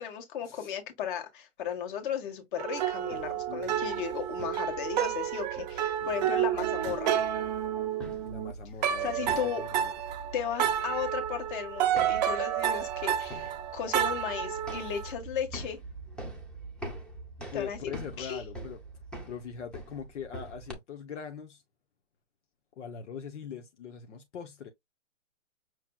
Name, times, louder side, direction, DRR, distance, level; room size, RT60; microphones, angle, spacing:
voice 1, 0.0-7.1 9.0-9.6 10.3-15.8 17.5-17.8 18.2-18.4, left 8 dB, 40° left, 1.7 m, -35 dB
sound 1, 2.6-8.5 8.8-15.1, right 10 dB, 35° right, 0.7 m, -30 dB
sound 2, 3.0-20.7, right 2 dB, ahead, 0.8 m, -45 dB
voice 2, 3.5-4.0 6.0-6.3 8.2-9.9 17.4-18.8 19.3-21.6 22.8-24.7, left 7 dB, 65° left, 1.0 m, -42 dB
6.1 x 3.2 x 2.3 m
hypercardioid pair, 150°, 39 cm